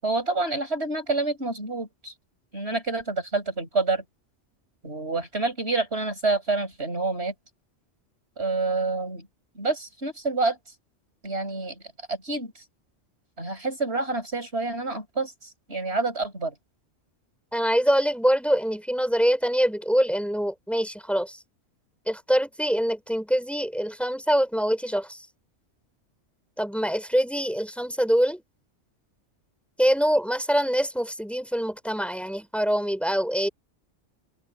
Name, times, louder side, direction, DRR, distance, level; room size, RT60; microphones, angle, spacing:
voice 1, 0.0-2.1 2.5-4.0 4.8-7.3 8.4-9.3 9.5-10.6 11.2-11.8 12.1-12.5 13.4-16.5, right 3 dB, 60° right, 6.6 m, -28 dB
voice 2, 17.5-21.4 22.1-25.3 26.6-28.4 29.8-33.5, equal, ahead, 4.5 m, -24 dB
omnidirectional pair, 1.2 m